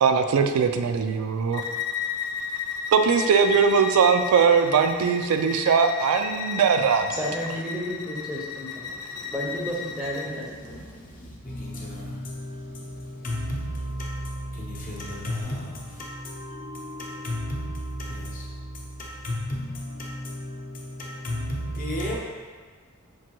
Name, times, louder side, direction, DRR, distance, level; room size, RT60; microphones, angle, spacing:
voice 1, 0.0-1.6 2.9-7.2, right 6 dB, 85° right, 6 dB, 0.3 m, -20 dB
Bowed string instrument, 1.5-10.3, left 7 dB, 85° left, 0.4 m, -33 dB
voice 2, 7.2-8.8 9.3-10.4, equal, 5° right, -5 dB, 0.6 m, -31 dB
voice 3, 8.8-9.3 9.9-22.2, left 1 dB, 40° left, -3 dB, 0.7 m, -34 dB
6.0 x 2.5 x 2.9 m, 1.5 s
head